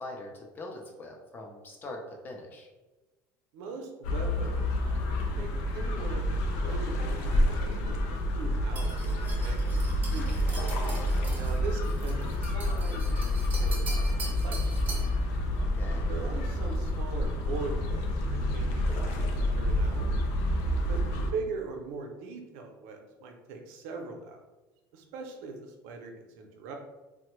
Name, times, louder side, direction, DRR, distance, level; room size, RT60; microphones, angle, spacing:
voice 1, 0.0-2.7 15.6-16.1, left 2 dB, 25° left, 0 dB, 0.5 m, -42 dB
voice 2, 3.5-9.0 9.3-10.5 11.3-14.9 16.1-20.2 20.9-24.4 24.9-26.7, right 4 dB, 90° right, 3 dB, 0.6 m, -41 dB
sound 1, 4.0-21.3, left 1 dB, 85° left, 0.5 m, -28 dB
sound 2, 8.8-15.2, right 3 dB, 20° right, 0.6 m, -43 dB
3.3 x 2.1 x 3.0 m, 1.1 s
cardioid pair, 160°, 8 cm